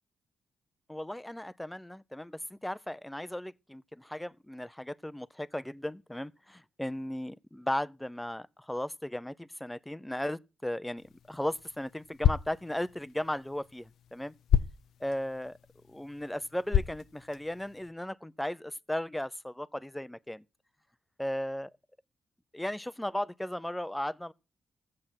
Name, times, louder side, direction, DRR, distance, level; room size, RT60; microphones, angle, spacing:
voice 1, 0.9-14.3 15.0-15.6 15.9-20.4 21.2-21.7 22.5-24.3, left 1 dB, 5° left, 0.5 m, -36 dB
sound 1, 11.0-17.9, left 10 dB, 85° left, 0.6 m, -33 dB
14.0 x 7.7 x 5.7 m
cardioid pair, 90°, 0 cm